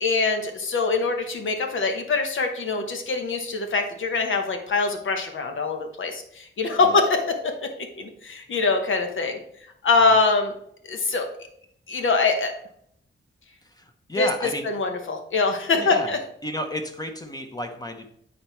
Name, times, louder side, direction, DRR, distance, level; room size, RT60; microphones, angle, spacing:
voice 1, 0.0-10.5 10.8-11.3 11.9-12.5 14.2-14.3 14.6-16.2, left 4 dB, 70° left, 5 dB, 1.1 m, -24 dB
voice 2, 13.6-14.7 15.8-16.1 16.4-18.2, left 1 dB, 20° left, 5 dB, 0.8 m, -32 dB
8.9 x 4.3 x 4.4 m, 0.69 s
wide cardioid pair, 160°, 21 cm